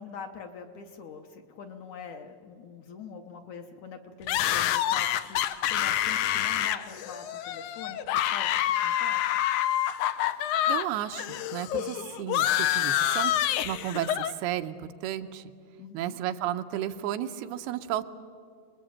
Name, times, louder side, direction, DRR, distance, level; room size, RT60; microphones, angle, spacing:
voice 1, 0.0-9.2 15.8-16.2, left 5 dB, 65° left, 5 dB, 2.0 m, -44 dB
sound 1, 4.3-10.9 11.1-14.3, left 12 dB, 80° left, 1.8 m, -27 dB
voice 2, 10.7-13.3 13.6-15.4 15.9-18.0, right 12 dB, 90° right, 8 dB, 2.9 m, -33 dB
26.0 x 20.5 x 8.7 m, 2.1 s
omnidirectional pair, 4.5 m